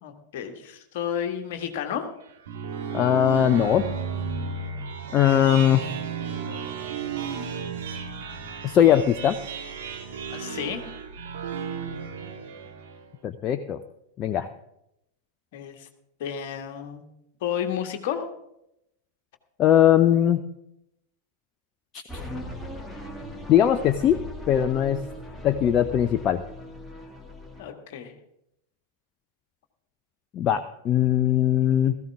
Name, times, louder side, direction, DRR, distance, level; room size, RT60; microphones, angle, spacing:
voice 1, 0.0-2.1 4.7-4.8 5.4-5.6 10.3-10.9 15.5-15.9 16.2-17.0 17.4-18.3 27.6-28.1, left 8 dB, 50° left, 5 dB, 1.7 m, -32 dB
sound 1, 2.2-13.1, right 6 dB, 55° right, 1.8 m, -34 dB
voice 2, 2.9-3.9 5.1-5.8 8.6-9.4 13.2-13.8 14.2-14.5 19.6-20.4 21.9-22.0 23.5-24.2 24.5-25.0 25.4-26.4 30.3-32.0, left 10 dB, 30° left, 10 dB, 0.6 m, -20 dB
sound 2, 22.1-27.6, equal, 5° left, 2.2 m, -39 dB
16.5 x 14.5 x 3.6 m, 0.81 s
figure-of-eight pair, 90°, 0 cm